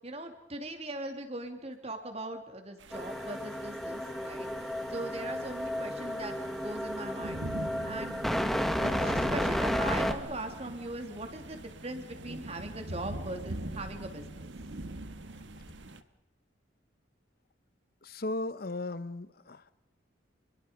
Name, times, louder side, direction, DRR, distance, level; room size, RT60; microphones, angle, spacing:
voice 1, 0.0-4.5 4.9-7.4 7.8-8.2 8.7-14.5, right 2 dB, 35° right, 5 dB, 2.9 m, -40 dB
sound 1, 2.8-16.0, right 1 dB, 70° right, 1.4 m, -43 dB
sound 2, 2.9-10.1, equal, ahead, 1.5 m, -32 dB
voice 2, 18.0-19.7, left 2 dB, 50° left, 15 dB, 0.9 m, -36 dB
28.0 x 22.5 x 5.1 m, 1.0 s
head